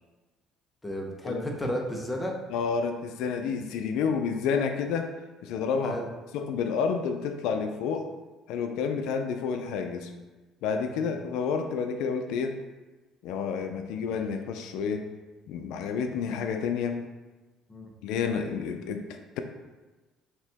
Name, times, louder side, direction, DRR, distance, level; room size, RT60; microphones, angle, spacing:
voice 1, 0.8-2.4 5.8-6.1 10.9-11.1 17.7-17.9, equal, 10° left, 0 dB, 0.7 m, -33 dB
voice 2, 2.5-5.1 5.4-6.0 6.3-8.1 8.5-10.1 10.6-12.6 13.2-15.1 15.5-17.0 18.0-19.4, left 6 dB, 80° left, 6 dB, 0.4 m, -29 dB
5.4 x 2.9 x 3.4 m, 1.2 s
cardioid pair, 135°, 0 cm